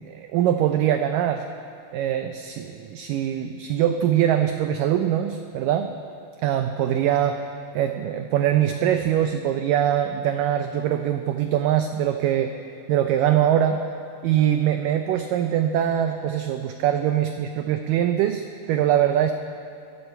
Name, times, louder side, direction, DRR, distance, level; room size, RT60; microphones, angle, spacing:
voice 1, 0.0-1.5 1.9-5.9 6.4-7.4 7.8-12.5 12.9-13.8 14.2-19.3, right 10 dB, 85° right, 7 dB, 1.9 m, -22 dB
22.5 x 14.0 x 4.4 m, 2.5 s
omnidirectional pair, 4.6 m